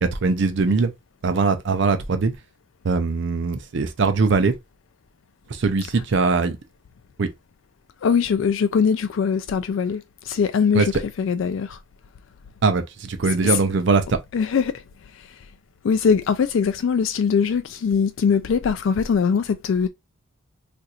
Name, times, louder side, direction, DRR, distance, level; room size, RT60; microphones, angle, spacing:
voice 1, 0.0-0.9 1.2-2.4 2.8-4.6 5.5-6.6 7.2-7.3 10.7-11.0 12.6-14.2, right 4 dB, 60° right, 0.5 m, -21 dB
voice 2, 8.0-10.9 11.2-11.8 13.4-13.6 14.3-14.8 15.1-15.5 15.8-19.9, left 6 dB, 65° left, 0.3 m, -21 dB
2.5 x 2.4 x 4.1 m
head